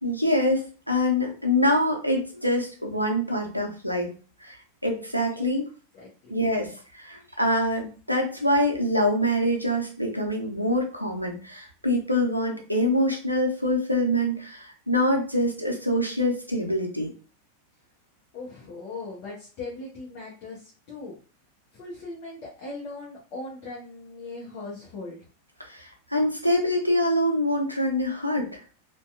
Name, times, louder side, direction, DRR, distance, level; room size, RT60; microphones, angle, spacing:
voice 1, 0.0-4.1 4.4-4.6 4.8-5.6 6.3-17.1 25.6-28.6, left 1 dB, 90° right, 1 dB, 0.6 m, -25 dB
voice 2, 5.9-6.4 18.3-21.2 21.7-25.2, left 3 dB, 45° left, -5 dB, 0.8 m, -39 dB
2.7 x 2.2 x 2.3 m, 0.37 s
figure-of-eight pair, 90°, 0 cm